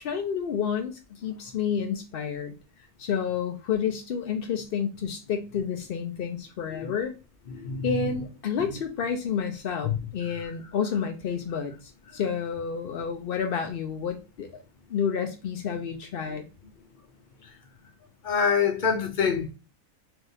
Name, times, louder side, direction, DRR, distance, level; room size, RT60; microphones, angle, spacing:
voice 1, 0.0-2.5 3.0-7.1 7.8-14.6 14.9-16.4, left 7 dB, 75° left, 0.5 m, -30 dB
voice 2, 7.5-8.2 8.6-8.7 9.8-10.5 16.3-16.4 17.4-17.5 18.2-19.5, left 6 dB, 40° left, 0.8 m, -27 dB
3.5 x 3.4 x 2.7 m
omnidirectional pair, 1.6 m